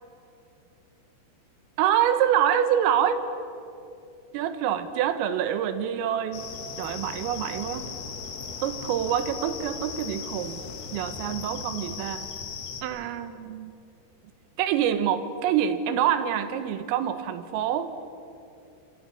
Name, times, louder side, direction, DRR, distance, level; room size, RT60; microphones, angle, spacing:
voice 1, 1.8-3.3 4.3-6.5 6.8-7.9 8.6-10.6 10.9-12.3 12.8-13.7 14.6-18.0, right 9 dB, 85° right, 10 dB, 3.9 m, -26 dB
sound 1, 6.3-12.8, left 5 dB, 60° left, 3.9 m, -37 dB
27.5 x 27.0 x 7.0 m, 2.7 s
omnidirectional pair, 5.8 m